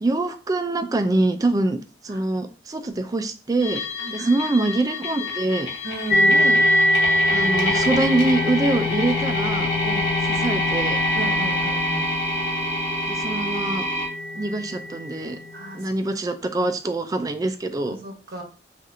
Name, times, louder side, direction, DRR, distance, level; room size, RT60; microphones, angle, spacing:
voice 1, 0.0-1.8 2.0-3.8 4.1-5.7 6.3-6.6 7.3-9.7 10.3-11.0 13.1-13.9 14.3-15.4 15.7-18.0, right 2 dB, 20° right, 8 dB, 0.3 m, -24 dB
sound 1, 3.6-14.1, left 1 dB, 75° left, 1.0 m, -27 dB
voice 2, 4.0-4.4 5.8-6.5 9.8-10.0 11.2-12.1 15.5-15.8 17.9-18.4, right 2 dB, 55° right, 2 dB, 0.8 m, -34 dB
sound 2, 6.1-15.6, left 1 dB, 50° left, 0.4 m, -23 dB
2.5 x 2.5 x 4.1 m, 0.35 s
head